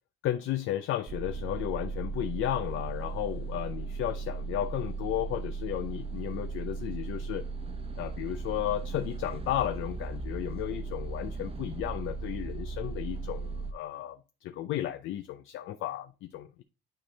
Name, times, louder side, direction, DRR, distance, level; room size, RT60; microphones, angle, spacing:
voice 1, 0.2-7.4 8.0-16.6, left 13 dB, 80° left, 0.5 m, -34 dB
sound 1, 1.1-13.7, right 4 dB, 30° right, 0.9 m, -37 dB
8.9 x 4.4 x 3.2 m
cardioid pair, 90°, 20 cm